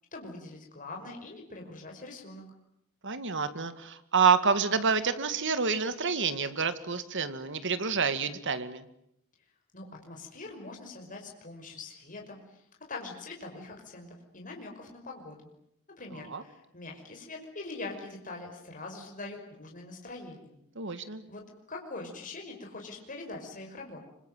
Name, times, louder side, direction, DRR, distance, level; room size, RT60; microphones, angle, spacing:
voice 1, 0.1-2.4 9.7-12.6 12.9-15.5 16.0-20.6 20.9-24.0, left 3 dB, 40° left, 1 dB, 5.7 m, -43 dB
voice 2, 3.0-8.8 16.3-16.4 20.8-21.2, right 5 dB, 55° right, 11 dB, 2.1 m, -28 dB
26.0 x 25.0 x 9.2 m, 0.75 s
head